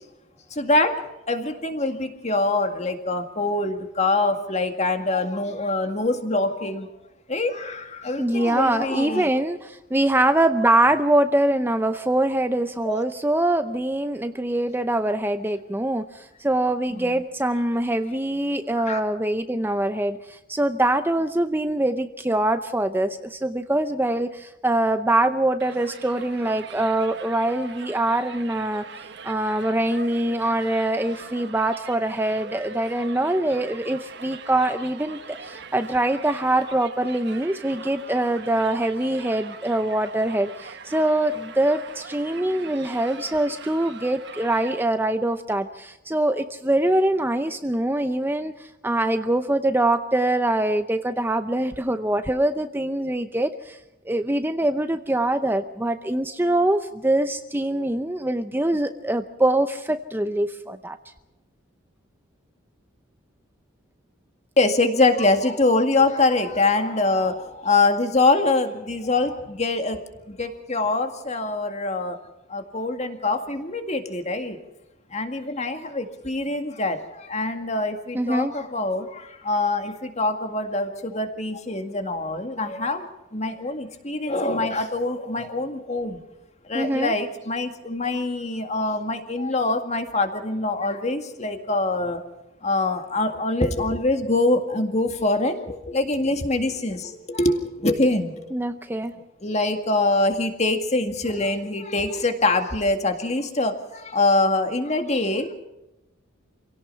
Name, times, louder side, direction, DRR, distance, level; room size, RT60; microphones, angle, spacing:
voice 1, 0.5-6.9 7.3-9.3 12.8-13.0 16.9-17.1 18.7-19.0 64.6-70.0 70.3-72.2 72.5-74.6 75.1-86.2 86.6-92.2 92.6-98.5 99.4-105.5, left 2 dB, 35° left, 6 dB, 2.1 m, -24 dB
voice 2, 8.2-28.9 29.2-53.8 54.1-61.0 78.1-78.5 86.7-87.1 98.5-99.2, right 1 dB, 10° right, 9 dB, 0.6 m, -23 dB
Crowd, 25.6-44.8, right 5 dB, 60° right, 1.5 m, -42 dB
27.0 x 17.5 x 5.7 m, 0.94 s
head